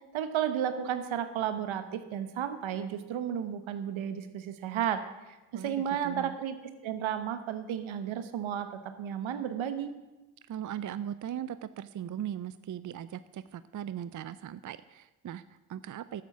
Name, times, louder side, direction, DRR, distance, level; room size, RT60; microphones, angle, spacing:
voice 1, 0.1-5.0 5.3-6.6 6.8-9.9, right 9 dB, 75° right, 10 dB, 1.1 m, -33 dB
voice 2, 5.5-6.4 10.5-16.2, right 10 dB, 40° right, 15 dB, 0.5 m, -39 dB
11.0 x 8.4 x 6.1 m, 1.1 s
supercardioid pair, 45°, 48 cm